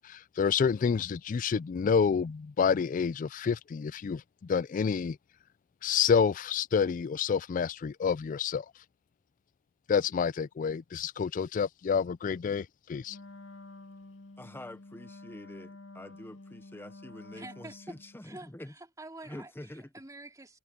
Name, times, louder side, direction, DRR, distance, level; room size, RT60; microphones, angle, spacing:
voice 1, 0.0-4.2 4.5-5.2 5.8-8.7 9.9-13.2, left 6 dB, 45° left, 0.3 m, -28 dB
Wind instrument woodwind instrument, 13.1-18.2, left 2 dB, 80° left, 1.8 m, -49 dB
voice 2, 14.4-18.7 19.2-19.9, left 1 dB, 10° left, 0.8 m, -46 dB
voice 3, 17.3-17.8 18.2-20.6, right 2 dB, 20° right, 3.4 m, -48 dB
head